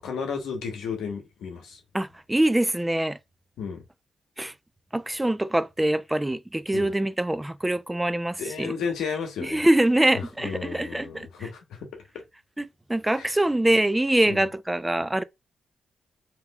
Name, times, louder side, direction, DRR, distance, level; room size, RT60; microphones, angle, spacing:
voice 1, 0.0-1.8 3.6-3.8 6.7-6.9 8.4-9.6 10.1-12.0 13.1-13.3 14.3-14.4, left 6 dB, 85° left, 0.9 m, -33 dB
voice 2, 1.9-3.2 4.4-4.5 4.9-8.7 9.4-11.5 12.6-15.2, right 1 dB, 15° right, 0.4 m, -24 dB
3.6 x 2.9 x 2.3 m
cardioid pair, 60°, 0 cm